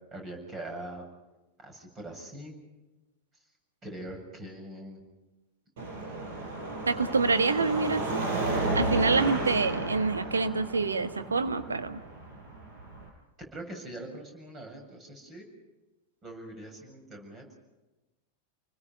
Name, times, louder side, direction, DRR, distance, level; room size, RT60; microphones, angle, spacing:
voice 1, 0.1-1.0 1.6-2.6 3.8-5.0 9.4-9.7 13.5-15.4 16.2-17.4, right 1 dB, 25° right, 3 dB, 7.4 m, -42 dB
Car passing by / Traffic noise roadway noise / Engine, 5.8-13.1, right 2 dB, 55° right, 5.5 m, -33 dB
voice 2, 6.9-8.2 8.7-12.0, right 4 dB, 75° right, 9 dB, 1.4 m, -26 dB
29.5 x 21.0 x 5.6 m, 1.1 s
figure-of-eight pair, 90°, 0 cm